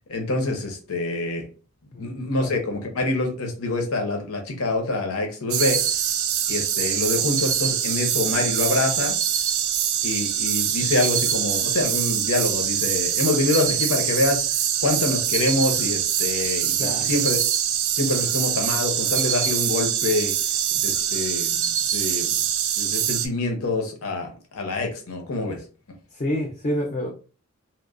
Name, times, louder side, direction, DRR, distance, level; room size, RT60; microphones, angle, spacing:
voice 1, 0.1-1.5 2.0-5.8 6.5-9.2 10.0-14.5 14.8-17.4 17.9-20.3 20.7-22.4 22.8-25.6, left 2 dB, 85° left, 3 dB, 0.7 m, -26 dB
voice 2, 1.9-2.5 16.8-17.1 26.1-27.1, left 1 dB, 35° left, 1 dB, 0.4 m, -28 dB
sound 1, 5.5-23.3, right 9 dB, 75° right, 0.4 m, -24 dB
2.9 x 2.0 x 2.4 m, 0.36 s
head